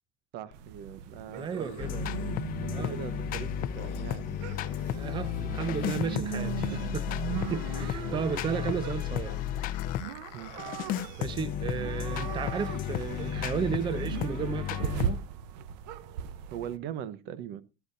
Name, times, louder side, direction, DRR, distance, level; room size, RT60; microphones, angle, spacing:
voice 1, 0.3-1.9 2.6-4.4 4.6-4.8 6.7-6.8 7.8-7.9 10.3-10.5 16.5-17.6, right 10 dB, 55° right, 1.1 m, -41 dB
sound 1, 0.5-13.5, left 17 dB, 85° left, 0.9 m, -48 dB
sound 2, 0.5-16.8, right 10 dB, 80° right, 0.9 m, -39 dB
voice 2, 1.4-2.1 2.7-3.0 4.9-7.0 7.3-9.4 11.2-15.2, right 7 dB, 20° right, 0.7 m, -34 dB
sound 3, 1.8-10.1 10.6-15.1, left 10 dB, 40° left, 0.7 m, -33 dB
14.0 x 12.5 x 2.7 m
supercardioid pair, 135°, 21 cm